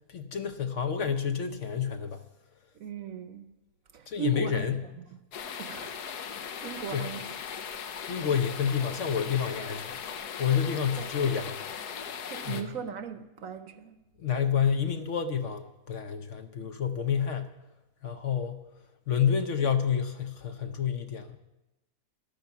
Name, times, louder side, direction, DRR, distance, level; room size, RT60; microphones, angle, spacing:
voice 1, 0.1-2.2 4.1-4.9 6.9-7.1 8.1-10.0 10.4-11.6 12.4-12.7 14.2-17.5 18.0-18.6 19.1-21.4, left 7 dB, 55° left, 1.0 m, -29 dB
voice 2, 2.7-3.5 3.9-5.0 5.6-5.9 6.6-7.6 11.0-11.2 12.3-14.0, right 6 dB, 60° right, 1.1 m, -38 dB
sound 1, 5.3-12.6, left 7 dB, 80° left, 1.4 m, -38 dB
12.0 x 10.5 x 7.2 m
omnidirectional pair, 1.7 m